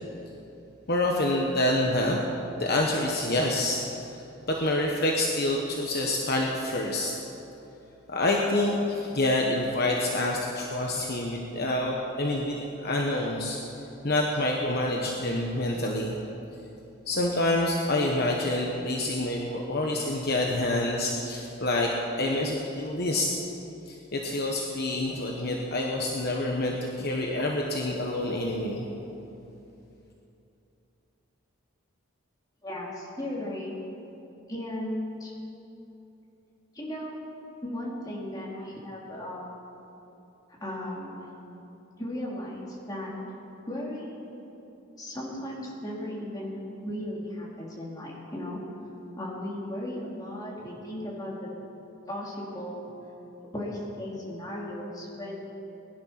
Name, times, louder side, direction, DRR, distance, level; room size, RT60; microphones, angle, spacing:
voice 1, 0.9-2.2 2.6-3.8 4.5-7.1 8.1-13.6 14.0-16.2 17.1-21.9 22.2-23.3 23.9-28.9, left 1 dB, 45° left, -1 dB, 1.2 m, -27 dB
voice 2, 32.6-33.7 34.5-35.3 36.7-37.2 37.6-39.5 40.6-41.2 42.0-43.1 43.7-44.2 44.9-46.5 46.8-48.6 49.1-51.5 52.1-52.9 53.5-55.4, left 1 dB, 20° left, -5 dB, 3.0 m, -36 dB
20.5 x 11.0 x 5.9 m, 2.9 s
head